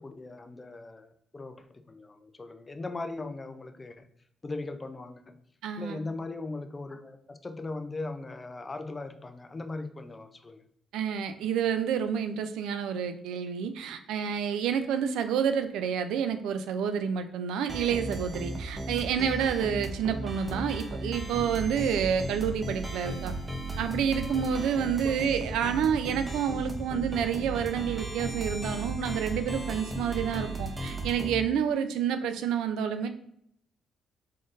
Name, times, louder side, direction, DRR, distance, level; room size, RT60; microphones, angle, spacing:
voice 1, 0.0-4.0 4.4-5.3 5.8-10.6 20.1-20.2 25.0-25.1, left 2 dB, 25° left, 8 dB, 0.4 m, -39 dB
voice 2, 5.6-6.0 10.9-23.3 23.8-33.1, right 7 dB, 90° right, 9 dB, 0.4 m, -29 dB
sound 1, 17.7-31.4, right 2 dB, 20° right, 0.6 m, -36 dB
3.8 x 3.7 x 2.5 m, 0.70 s
cardioid pair, 90°, 0 cm